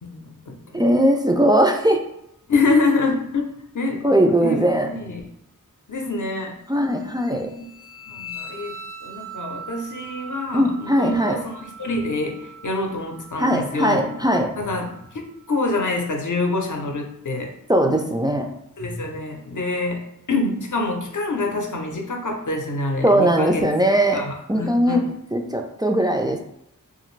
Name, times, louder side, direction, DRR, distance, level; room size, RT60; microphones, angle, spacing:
voice 1, 0.0-0.8 2.5-5.3 5.9-6.6 7.3-7.7 8.1-8.8 9.0-14.2 14.6-17.5 18.8-23.7 24.1-25.0, left 3 dB, 65° left, 2 dB, 0.6 m, -26 dB
voice 2, 0.7-2.0 4.0-4.9 6.7-7.5 10.5-11.4 13.4-14.5 17.7-18.5 23.0-24.2 24.5-25.0 25.3-26.4, right 1 dB, 15° right, 3 dB, 0.3 m, -19 dB
sound 1, 7.1-15.9, right 3 dB, 65° right, 0.7 m, -41 dB
2.5 x 2.5 x 3.1 m, 0.77 s
wide cardioid pair, 45°, 33 cm